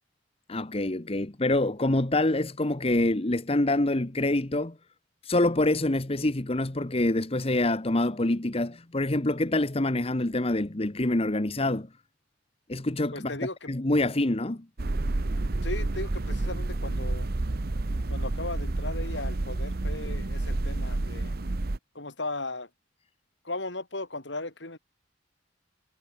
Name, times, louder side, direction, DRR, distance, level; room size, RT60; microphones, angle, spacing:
voice 1, 0.5-4.8 5.2-11.9 12.7-13.3 13.7-14.7, left 2 dB, 30° left, 1.2 m, -26 dB
voice 2, 13.1-13.7 15.6-17.3 18.1-21.3 21.9-22.7 23.4-24.8, left 2 dB, 70° left, 5.0 m, -36 dB
sound 1, 14.8-21.8, right 2 dB, 55° right, 0.9 m, -29 dB
head